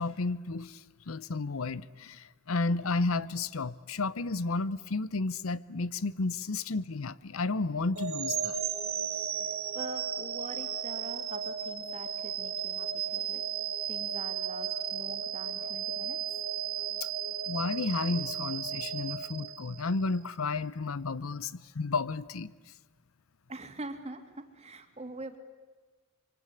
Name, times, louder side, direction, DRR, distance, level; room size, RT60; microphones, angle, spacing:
voice 1, 0.0-8.6 17.5-22.5, left 3 dB, 80° left, 0.8 m, -32 dB
sound 1, 7.9-20.1, right 8 dB, 80° right, 2.7 m, -35 dB
voice 2, 9.3-13.4 13.9-16.2 23.5-25.4, right 2 dB, 30° right, 2.5 m, -44 dB
25.0 x 24.5 x 9.8 m
head